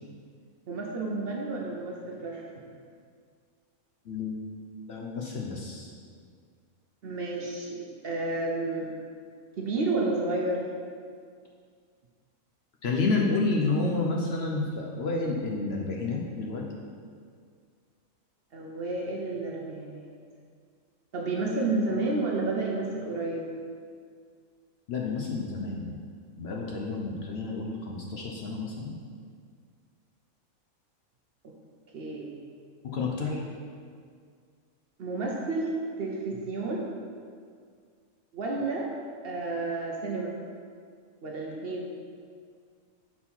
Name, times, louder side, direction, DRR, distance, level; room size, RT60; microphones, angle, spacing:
voice 1, 0.7-2.6 7.0-8.9 9.6-10.6 18.5-20.1 21.1-23.5 31.9-32.3 33.2-33.4 35.0-36.8 38.3-38.9 39.2-40.3 41.2-41.9, right 2 dB, 55° right, -1 dB, 0.8 m, -31 dB
voice 2, 4.1-4.4 4.9-5.9 12.8-16.6 24.9-26.0 26.4-28.9 32.8-33.3, left 3 dB, 60° left, -1 dB, 0.8 m, -30 dB
5.5 x 4.3 x 4.3 m, 2.1 s
omnidirectional pair, 1.4 m